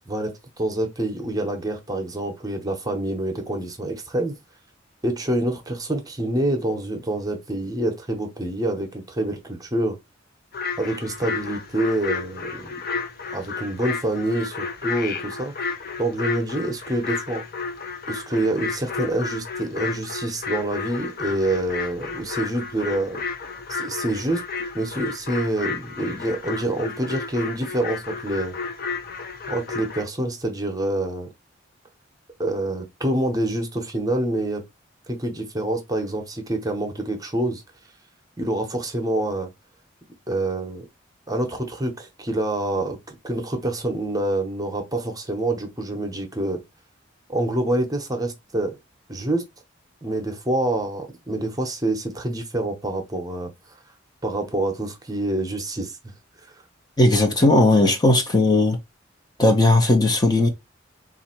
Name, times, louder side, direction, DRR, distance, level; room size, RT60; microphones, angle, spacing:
voice 1, 0.1-4.4 5.0-10.0 10.8-12.7 13.3-15.5 16.0-17.4 18.1-23.2 23.7-24.4 24.7-28.5 29.5-31.3 32.4-34.6 35.1-37.6 38.4-39.5 40.3-40.8 41.3-46.6 47.3-48.8 49.1-49.5 50.0-53.5 54.2-56.0, right 1 dB, 20° right, 0.9 m, -26 dB
sound 1, 10.5-30.0, left 5 dB, 50° left, 0.7 m, -32 dB
voice 2, 57.0-58.8 59.4-60.5, left 2 dB, 20° left, 0.7 m, -17 dB
4.1 x 2.5 x 4.3 m
head